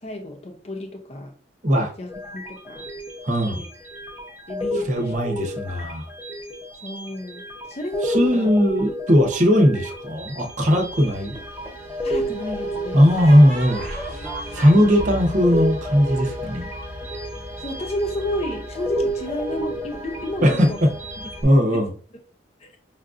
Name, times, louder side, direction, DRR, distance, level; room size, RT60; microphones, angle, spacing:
voice 1, 0.0-1.3 2.0-2.9 3.5-3.7 4.5-5.2 6.8-8.5 10.7-10.8 12.0-13.0 17.6-20.8 21.2-21.3 21.7-21.8 22.6-22.7, left 1 dB, 35° left, 0.5 m, -31 dB
sound 1, 2.1-21.4, equal, 10° right, 0.8 m, -31 dB
voice 2, 3.2-3.6 4.9-6.0 8.0-11.3 12.9-13.9 14.5-16.7 20.4-20.7 21.4-21.9, equal, 40° right, 0.8 m, -18 dB
sound 2, 11.0-11.9 13.2-16.8, right 1 dB, 5° left, 1.2 m, -35 dB
5.4 x 2.5 x 2.4 m
head